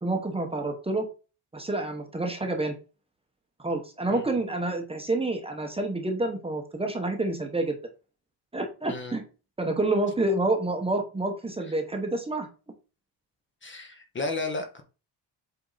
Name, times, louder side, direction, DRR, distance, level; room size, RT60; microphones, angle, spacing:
voice 1, 0.0-1.1 1.5-2.7 3.6-7.8 8.5-9.2 9.6-12.5, right 2 dB, 10° right, 1.0 m, -28 dB
voice 2, 13.6-14.8, left 3 dB, 25° left, 0.9 m, -33 dB
8.1 x 3.6 x 4.0 m
cardioid pair, 170°, 46 cm